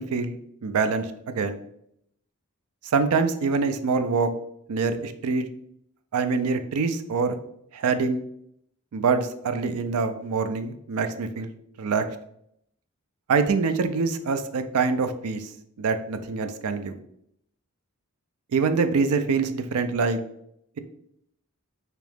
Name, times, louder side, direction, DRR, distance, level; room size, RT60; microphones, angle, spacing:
voice 1, 0.0-1.6 2.9-4.3 4.7-5.5 6.1-7.4 7.7-8.2 8.9-11.5 11.8-12.0 13.3-15.5 15.8-17.0 18.5-20.2, right 4 dB, 85° right, 9 dB, 0.4 m, -25 dB
3.6 x 3.0 x 3.4 m, 0.73 s
head